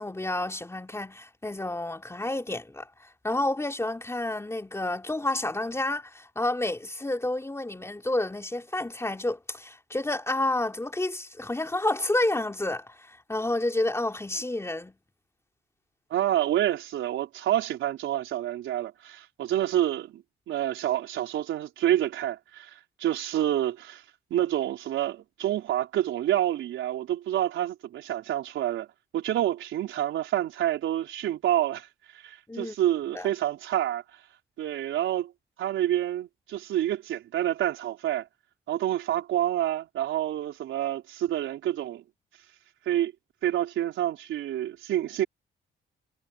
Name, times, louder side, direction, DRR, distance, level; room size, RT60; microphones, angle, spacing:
voice 1, 0.0-2.9 3.2-15.0 32.5-32.7 33.1-33.3, left 2 dB, 15° left, 3.5 m, -30 dB
voice 2, 16.1-24.0 24.3-28.9 29.1-31.9 32.2-34.0 34.6-35.3 35.6-38.3 38.7-42.0 42.9-43.1 43.4-45.3, right 12 dB, 80° right, 4.4 m, -28 dB
cardioid pair, 90°, 20 cm